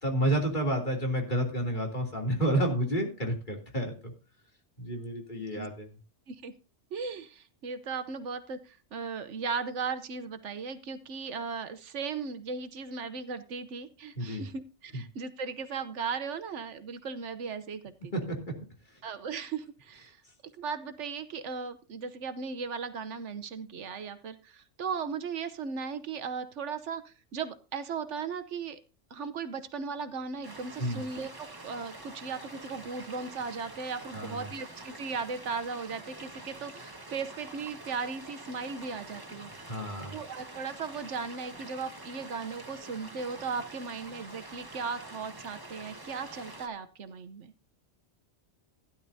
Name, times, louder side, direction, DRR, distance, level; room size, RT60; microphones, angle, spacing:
voice 1, 0.0-4.1 4.8-5.9 14.2-14.5 14.9-15.0 18.1-18.4 30.8-31.0 34.1-34.5 39.7-40.2, right 1 dB, 40° left, 0 dB, 3.1 m, -30 dB
voice 2, 6.9-18.1 19.0-20.2 20.6-28.8 29.1-39.6 40.1-47.5, right 5 dB, 75° right, 10 dB, 1.2 m, -37 dB
sound 1, 30.4-46.7, right 2 dB, 20° right, 1.3 m, -46 dB
16.0 x 10.5 x 2.7 m, 0.33 s
omnidirectional pair, 1.2 m